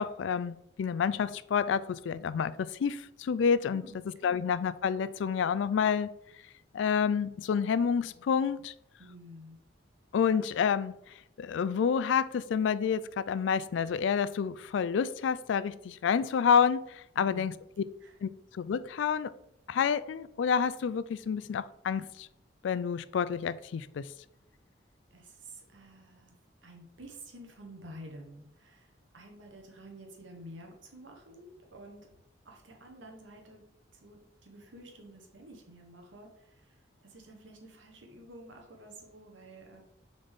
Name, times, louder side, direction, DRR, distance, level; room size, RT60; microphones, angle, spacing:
voice 1, 0.0-3.8 4.2-6.1 6.7-8.7 10.1-10.9 11.4-17.5 18.2-19.3 19.7-22.3 22.6-24.1, left 7 dB, 75° left, 0.3 m, -29 dB
voice 2, 3.7-4.4 9.0-9.6 17.1-17.5 18.0-18.2 25.1-32.1 32.4-33.6 33.9-39.8, right 1 dB, 80° right, 1.2 m, -50 dB
6.7 x 4.1 x 3.6 m
head